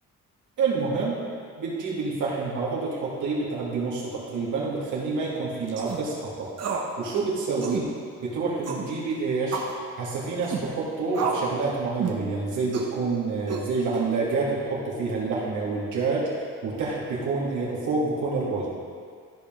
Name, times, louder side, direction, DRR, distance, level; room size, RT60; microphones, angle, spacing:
voice 1, 0.6-1.2 1.6-6.5 7.0-7.9 8.2-9.6 10.0-16.3 16.6-18.7, right 4 dB, 80° right, -6 dB, 2.5 m, -28 dB
sound 1, 5.7-6.0 6.6-6.9 7.2-7.3 7.6-7.9 8.6-8.9 9.5-9.8 10.4-10.7 11.1-11.5 12.0-12.2 12.7-12.9 13.5-14.0, right 5 dB, 55° right, 1.2 m, -30 dB
13.5 x 5.2 x 3.8 m, 2.1 s
cardioid pair, 90°, 30 cm